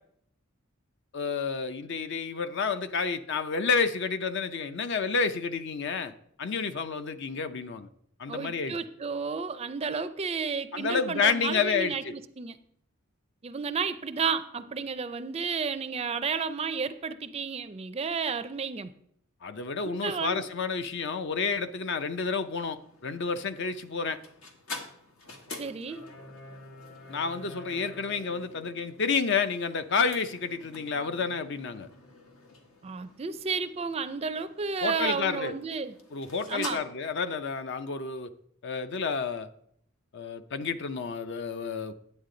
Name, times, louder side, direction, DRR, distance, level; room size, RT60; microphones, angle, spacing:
voice 1, 1.1-6.1 6.4-7.9 8.2-8.8 10.7-12.1 19.4-24.2 27.1-31.9 34.8-35.6 36.1-38.3 38.6-39.5 40.1-41.9, left 5 dB, 60° left, 10 dB, 0.6 m, -30 dB
voice 2, 8.3-12.6 13.4-18.9 20.0-20.4 25.5-26.1 32.8-35.9 36.5-36.8, right 5 dB, 30° right, 11 dB, 0.4 m, -32 dB
sound 1, 21.7-36.7, left 2 dB, 80° left, 1.4 m, -47 dB
9.8 x 8.2 x 3.8 m, 0.70 s
head